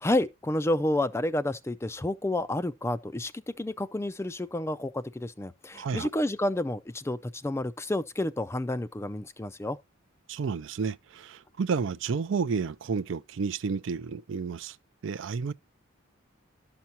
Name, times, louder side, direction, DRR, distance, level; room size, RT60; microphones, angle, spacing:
voice 1, 0.0-9.8, left 1 dB, 15° left, 0.3 m, -30 dB
voice 2, 5.7-6.1 10.3-14.8 15.0-15.5, right 5 dB, 65° right, 0.4 m, -31 dB
12.0 x 5.9 x 2.8 m
head